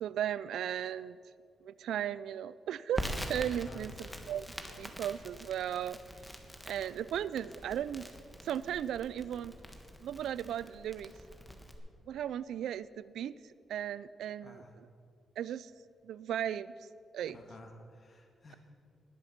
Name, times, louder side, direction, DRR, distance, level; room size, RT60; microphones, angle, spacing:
voice 1, 0.0-1.2 1.6-4.5 4.8-6.0 6.7-8.1 8.4-9.5 10.0-11.1 12.1-14.6 15.4-15.7 16.0-16.7 17.1-17.4, right 10 dB, 85° right, 18 dB, 0.3 m, -36 dB
Crackle, 3.0-11.8, equal, 5° left, 1.4 m, -44 dB
voice 2, 3.6-3.9 14.4-14.7 17.3-18.6, left 2 dB, 40° left, 2 dB, 1.6 m, -52 dB
19.5 x 7.1 x 5.9 m, 2.4 s
cardioid pair, 105°, 0 cm